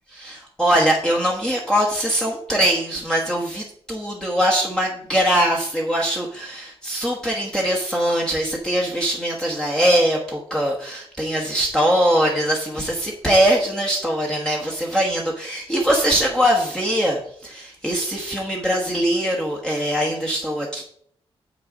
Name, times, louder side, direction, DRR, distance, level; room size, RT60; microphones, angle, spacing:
voice 1, 0.1-20.8, equal, 5° left, -2 dB, 1.2 m, -22 dB
7.8 x 6.4 x 5.1 m, 0.64 s
wide cardioid pair, 170°, 10 cm